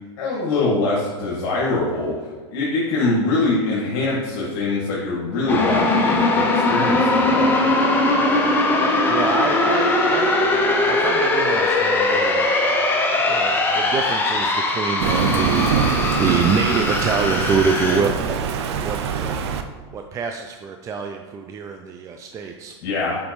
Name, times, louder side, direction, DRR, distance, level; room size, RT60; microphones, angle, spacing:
voice 1, 0.2-2.2 2.5-7.5 22.8-23.2, left 2 dB, 55° left, -5 dB, 1.8 m, -23 dB
sound 1, 5.5-18.0, left 2 dB, 15° left, 1.0 m, -20 dB
voice 2, 9.1-10.3 10.8-12.5 13.3-19.4 19.9-22.7, right 5 dB, 20° right, 4 dB, 0.4 m, -26 dB
Thunder, 15.0-19.6, right 6 dB, 65° right, 0.6 m, -23 dB
8.4 x 5.1 x 3.1 m, 1.4 s
hypercardioid pair, 115°, 15 cm